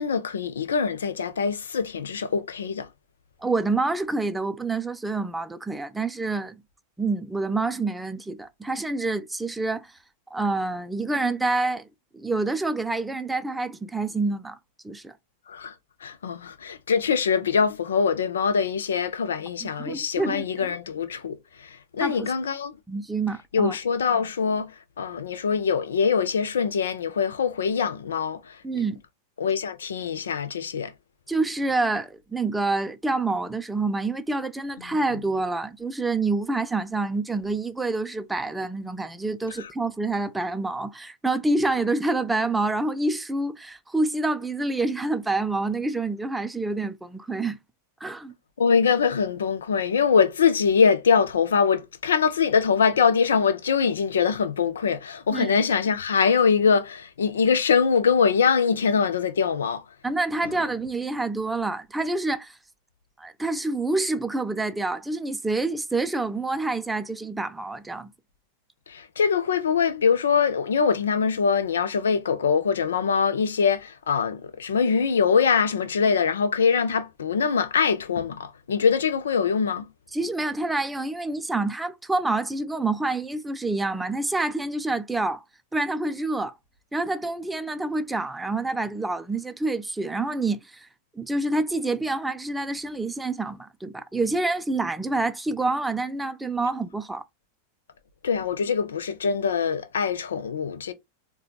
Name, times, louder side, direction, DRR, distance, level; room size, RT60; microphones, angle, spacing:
voice 1, 0.0-2.9 15.5-15.7 16.0-22.8 23.5-28.8 29.4-30.9 39.6-39.7 48.6-59.8 60.4-60.5 68.9-79.9 98.2-100.9, left 6 dB, 65° left, 0.6 m, -23 dB
voice 2, 3.4-6.6 7.0-9.9 10.3-11.9 12.1-14.6 14.8-15.1 19.6-20.7 22.0-22.3 22.9-23.8 28.6-29.0 31.3-47.6 48.0-48.3 55.3-55.6 60.0-62.6 63.2-68.1 80.1-85.4 85.7-86.5 86.9-90.9 91.1-97.2, right 3 dB, 5° right, 0.4 m, -27 dB
4.3 x 2.3 x 3.8 m
figure-of-eight pair, 90°, 0 cm